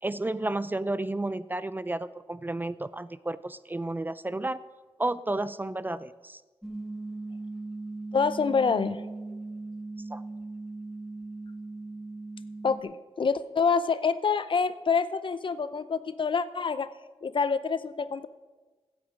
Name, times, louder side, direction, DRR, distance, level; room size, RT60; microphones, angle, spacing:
voice 1, 0.0-4.6 5.0-6.4 10.1-10.2, right 2 dB, 20° right, 16 dB, 0.4 m, -32 dB
sound 1, 6.6-12.8, right 2 dB, ahead, 1.1 m, -39 dB
voice 2, 8.1-9.0 12.6-16.9 17.2-18.3, left 5 dB, 50° left, 14 dB, 0.6 m, -27 dB
15.5 x 8.0 x 5.1 m, 1.3 s
wide cardioid pair, 100°, 11 cm